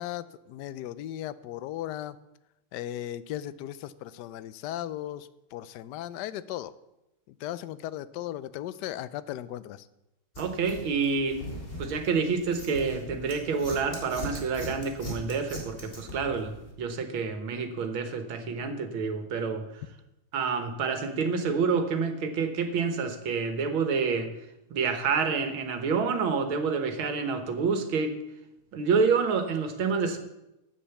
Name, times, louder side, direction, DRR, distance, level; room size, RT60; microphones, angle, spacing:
voice 1, 0.0-2.2 2.7-6.7 7.4-9.9, left 12 dB, 80° left, 15 dB, 0.9 m, -37 dB
sound 1, 10.3-16.7, equal, 25° left, 2.9 m, -40 dB
voice 2, 10.4-11.4 11.8-19.6 20.3-24.3 24.7-28.1 28.7-30.2, right 5 dB, 70° right, 7 dB, 2.0 m, -28 dB
10.0 x 8.6 x 7.0 m, 0.91 s
omnidirectional pair, 2.3 m